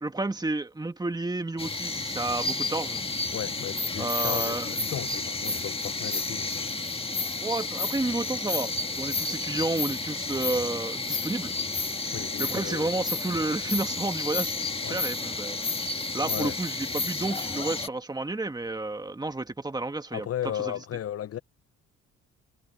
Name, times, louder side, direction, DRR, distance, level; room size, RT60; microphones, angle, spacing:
voice 1, 0.0-3.0 4.0-4.8 7.4-11.5 12.4-14.5 14.8-15.6 16.1-20.3, right 2 dB, 15° right, 1.9 m, -31 dB
sound 1, 1.6-17.9, left 3 dB, 20° left, 1.6 m, -31 dB
voice 2, 3.3-6.8 12.1-12.9 14.8-15.0 16.2-16.6 20.1-21.4, left 11 dB, 50° left, 0.8 m, -35 dB
cardioid pair, 90°, 30 cm